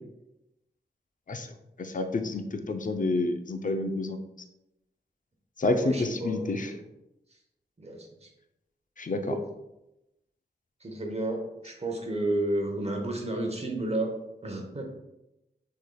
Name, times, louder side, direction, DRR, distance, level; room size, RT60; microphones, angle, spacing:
voice 1, 1.8-4.2 5.6-6.7 9.0-9.3, left 2 dB, 45° left, 7 dB, 0.5 m, -29 dB
voice 2, 5.8-6.8 7.8-8.3 9.2-9.4 10.8-14.1 14.4-14.8, right 1 dB, 35° right, 2 dB, 0.8 m, -32 dB
6.2 x 3.8 x 2.2 m, 0.90 s
wide cardioid pair, 65°, 18 cm